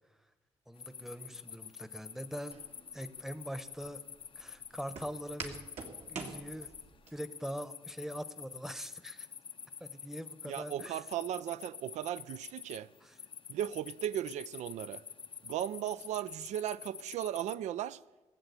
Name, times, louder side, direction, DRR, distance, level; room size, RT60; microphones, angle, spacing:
voice 1, 0.7-2.6 2.9-4.0 4.4-5.6 6.1-6.7 7.1-9.3 9.8-11.0 13.0-13.1, equal, 5° right, 0.9 m, -43 dB
sound 1, 0.8-17.6, left 7 dB, 50° left, 0.5 m, -48 dB
Walk footsteps, 2.5-7.1, right 4 dB, 70° right, 2.1 m, -46 dB
voice 2, 10.5-12.9 13.5-15.0 15.4-18.0, right 11 dB, 90° right, 0.4 m, -36 dB
17.5 x 7.8 x 8.2 m
cardioid pair, 80°, 12 cm